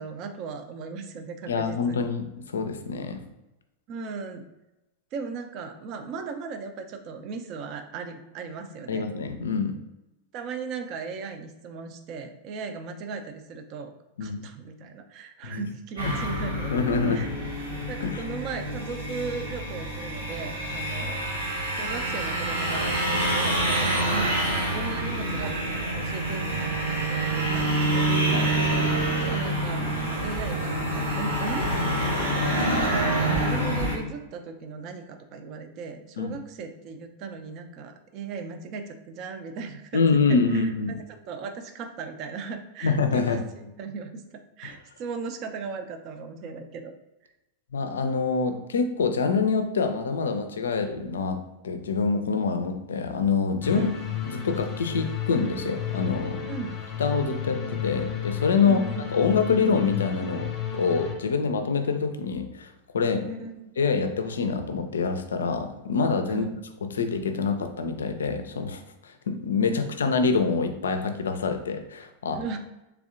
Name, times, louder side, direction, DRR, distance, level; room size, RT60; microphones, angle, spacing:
voice 1, 0.0-2.1 3.9-4.4 5.1-9.1 10.3-13.9 14.2-16.8 17.1-17.3 17.9-21.2 21.7-24.3 24.7-28.3 29.1-32.9 33.4-40.7 41.1-44.2 44.6-46.9 53.7-53.9 56.5-56.8 58.6-59.0 63.2-63.6 66.2-66.6 69.7-70.1 72.4-72.6, right 5 dB, 40° right, 7 dB, 0.5 m, -37 dB
voice 2, 1.5-2.2 2.5-3.2 8.9-9.7 14.2-14.4 15.4-15.6 16.1-16.2 16.7-17.3 18.0-18.2 28.3-28.5 32.5-32.8 36.2-36.4 39.9-41.0 42.8-43.4 47.7-53.9 54.4-56.4 57.0-58.8 59.1-60.5 60.7-63.2 63.8-66.4 66.9-72.4, left 5 dB, 65° left, 7 dB, 0.4 m, -26 dB
sound 1, 16.0-34.0, right 1 dB, 70° right, 1.4 m, -27 dB
sound 2, 53.6-61.1, left 9 dB, 20° left, 0.8 m, -33 dB
3.4 x 3.4 x 2.5 m, 0.96 s
figure-of-eight pair, 90°, 0 cm